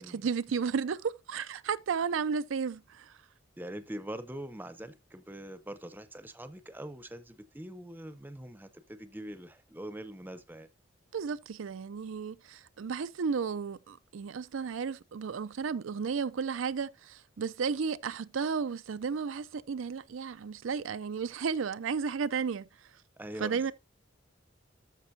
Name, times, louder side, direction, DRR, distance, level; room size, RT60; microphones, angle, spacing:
voice 1, 0.0-3.2 11.1-22.7 23.4-23.7, right 6 dB, 85° right, 0.5 m, -33 dB
voice 2, 3.6-10.7 23.2-23.7, right 1 dB, 10° right, 0.7 m, -43 dB
13.5 x 5.3 x 2.7 m
head